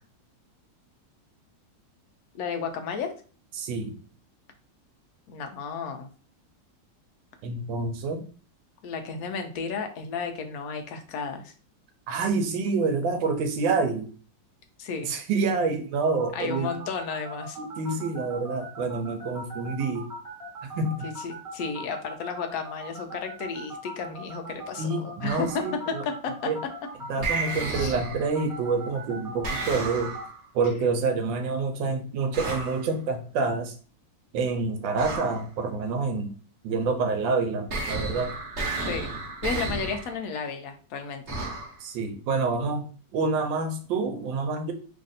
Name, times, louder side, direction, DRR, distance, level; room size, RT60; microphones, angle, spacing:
voice 1, 2.3-3.1 5.3-6.1 8.8-11.5 14.8-15.1 16.3-17.6 21.0-25.6 26.0-26.3 27.7-27.9 38.9-39.1 39.4-41.4, left 5 dB, 70° left, 5 dB, 0.9 m, -33 dB
voice 2, 3.5-4.0 7.4-8.3 12.1-14.1 15.0-16.7 17.6-20.1 20.6-21.1 24.8-26.0 26.4-26.6 27.1-30.1 30.5-33.7 34.3-36.3 36.6-38.3 41.8-42.9 43.1-44.7, right 4 dB, 85° right, 6 dB, 1.4 m, -27 dB
sound 1, 16.1-30.2, right 1 dB, 15° right, 0.8 m, -40 dB
sound 2, 25.3-25.7 27.2-28.4 29.4-30.5 32.3-32.9 35.0-35.4 37.7-40.2 41.3-41.8, right 3 dB, 45° right, 1.0 m, -32 dB
3.3 x 2.5 x 4.0 m, 0.39 s
omnidirectional pair, 2.0 m